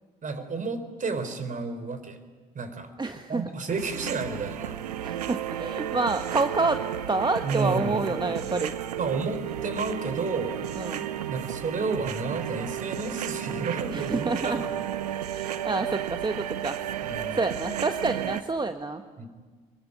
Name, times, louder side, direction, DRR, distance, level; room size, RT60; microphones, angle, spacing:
voice 1, 0.2-2.2 2.5-3.0 3.3-4.8 7.4-8.0 9.0-10.7 11.3-15.0 17.0-17.4 19.2-19.3, right 4 dB, 40° right, 11 dB, 4.0 m, -31 dB
voice 2, 3.0-3.5 5.0-8.7 10.8-11.1 13.9-14.7 15.3-16.8 17.3-19.0, right 3 dB, 20° right, 7 dB, 1.5 m, -28 dB
sound 1, 3.7-18.4, right 10 dB, 90° right, 0.8 m, -33 dB
25.0 x 22.0 x 10.0 m, 1.5 s
hypercardioid pair, 50°, 20 cm